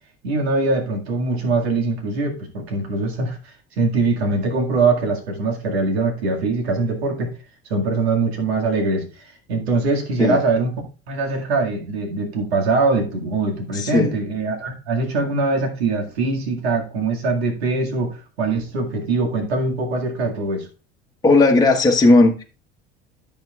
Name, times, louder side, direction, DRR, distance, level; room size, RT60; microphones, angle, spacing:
voice 1, 0.2-7.3 7.7-9.1 9.5-10.7 11.1-20.7, right 3 dB, 75° right, 2 dB, 2.0 m, -22 dB
voice 2, 13.7-14.1 21.2-22.4, left 2 dB, 10° left, 1 dB, 1.2 m, -15 dB
13.5 x 6.7 x 2.3 m, 0.34 s
hypercardioid pair, 70°, 32 cm